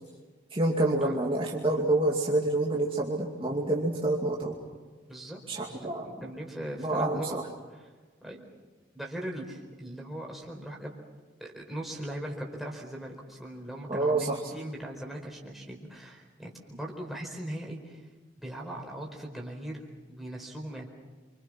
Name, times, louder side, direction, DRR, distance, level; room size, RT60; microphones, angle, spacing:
voice 1, 0.5-4.6 5.5-6.1 6.8-7.4 13.9-14.4, right 2 dB, 30° right, -2 dB, 2.5 m, -27 dB
voice 2, 5.1-5.4 5.7-7.4 7.7-7.9 8.2-8.4 8.9-11.0 11.4-18.0 18.4-20.9, right 1 dB, ahead, -1 dB, 4.6 m, -39 dB
29.0 x 26.0 x 6.2 m, 1.4 s
head